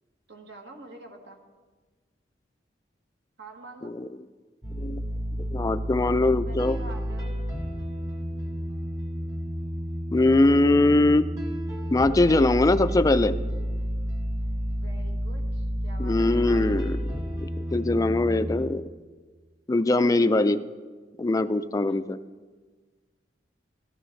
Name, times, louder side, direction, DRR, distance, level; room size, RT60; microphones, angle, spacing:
voice 1, 0.3-1.4 3.4-3.9 6.4-7.4 14.7-16.9 20.0-20.6 21.8-22.1, right 2 dB, 70° right, 2 dB, 1.6 m, -47 dB
sound 1, 4.6-18.6, equal, 20° right, 1.5 m, -31 dB
voice 2, 5.5-6.8 10.1-11.3 11.9-13.4 16.0-17.0 17.4-18.8 19.7-20.6 21.2-22.2, left 2 dB, 20° left, 12 dB, 0.3 m, -22 dB
13.5 x 12.5 x 3.2 m, 1.4 s
head